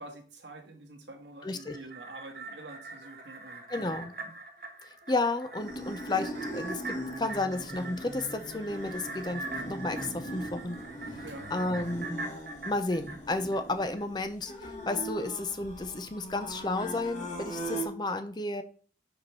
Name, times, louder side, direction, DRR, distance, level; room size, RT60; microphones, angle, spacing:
voice 1, 0.0-4.0 4.2-4.3 11.2-11.9, right 2 dB, 85° right, 4 dB, 1.5 m, -47 dB
voice 2, 1.4-1.8 3.7-4.1 5.1-10.8 11.5-12.3 12.6-18.6, left 2 dB, 25° left, 9 dB, 0.5 m, -32 dB
sound 1, 1.5-14.0 14.4-14.5, right 3 dB, 55° right, 1.3 m, -43 dB
sound 2, 5.6-17.9, right 1 dB, 40° left, 1.5 m, -40 dB
5.3 x 4.6 x 5.4 m, 0.42 s
head